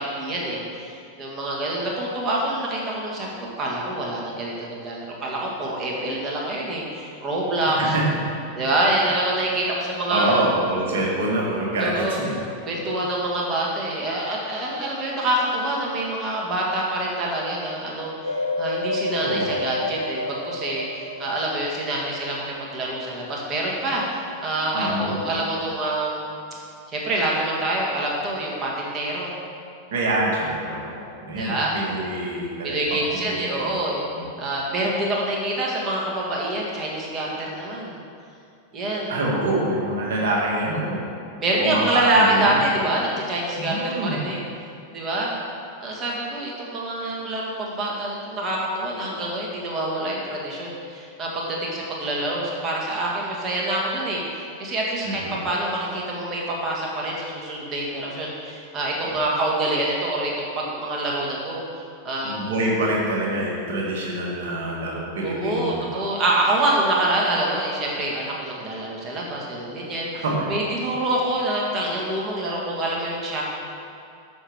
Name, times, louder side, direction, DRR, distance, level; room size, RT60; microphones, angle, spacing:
voice 1, 0.0-3.3 3.6-7.9 8.5-10.4 11.8-12.2 12.7-26.2 26.9-29.3 31.3-31.7 32.6-34.0 34.4-38.0 38.7-39.1 41.4-44.4 44.9-45.3 45.8-61.6 62.0-62.4 65.2-70.1 70.5-73.4, right 1 dB, 25° right, -3 dB, 1.7 m, -26 dB
voice 2, 10.1-12.3 19.1-19.5 24.7-25.2 29.9-30.8 31.3-33.7 39.1-41.0 41.6-42.7 43.5-44.2 55.0-55.4 59.0-59.1 62.2-66.0 70.2-70.5, right 1 dB, 55° right, -3 dB, 1.7 m, -25 dB
sound 1, 18.2-22.9 23.3-23.4, left 2 dB, 85° left, 0.5 m, -30 dB
6.3 x 6.1 x 4.8 m, 2.5 s
figure-of-eight pair, 90°, 0 cm